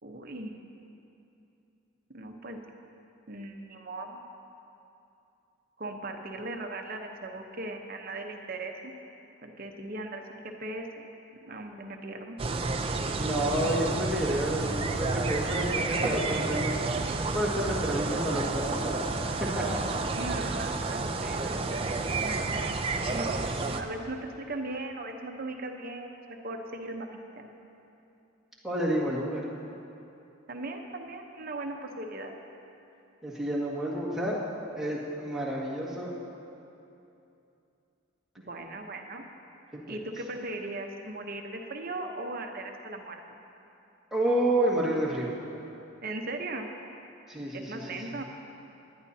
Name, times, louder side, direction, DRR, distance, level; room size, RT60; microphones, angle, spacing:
voice 1, 0.0-0.5 2.1-2.6 3.3-4.2 5.8-8.9 9.4-10.2 10.6-11.1 11.4-12.4 16.0-16.2 20.1-22.8 23.1-27.5 30.5-32.3 38.4-39.2 39.9-43.2 46.0-46.7 47.5-48.2, right 2 dB, 45° right, 3 dB, 0.9 m, -38 dB
sound 1, 12.4-23.8, right 3 dB, 25° right, 0.4 m, -30 dB
voice 2, 13.2-16.7 17.3-19.0 19.4-19.8 28.6-29.4 33.2-34.4 34.8-36.1 39.7-40.0 44.1-45.3 47.3-48.0, right 1 dB, ahead, -8 dB, 1.8 m, -29 dB
18.5 x 11.0 x 2.8 m, 2.8 s
head